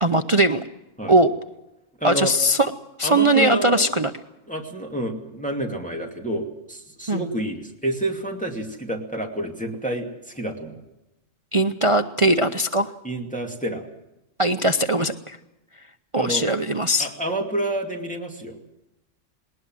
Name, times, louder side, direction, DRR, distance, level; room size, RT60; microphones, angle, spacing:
voice 1, 0.0-0.6 1.1-1.3 2.0-2.7 3.0-4.1 7.1-7.2 11.5-12.9 14.4-15.4 16.1-17.1, right 1 dB, 30° right, 8 dB, 0.7 m, -20 dB
voice 2, 2.0-2.3 3.0-3.9 4.5-10.8 13.0-13.9 16.2-16.5 17.0-18.6, right 1 dB, 5° left, 1 dB, 2.5 m, -29 dB
20.0 x 19.5 x 7.6 m, 0.93 s
omnidirectional pair, 1.3 m